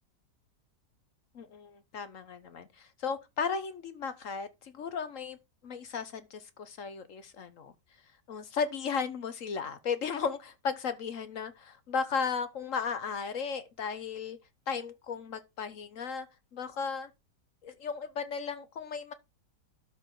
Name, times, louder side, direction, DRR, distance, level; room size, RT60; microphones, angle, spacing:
voice 1, 1.3-5.4 5.6-7.7 8.3-14.4 14.7-16.3 16.5-17.1 17.6-19.1, left 6 dB, 55° left, 1.1 m, -35 dB
12.0 x 5.0 x 3.8 m
omnidirectional pair, 1.9 m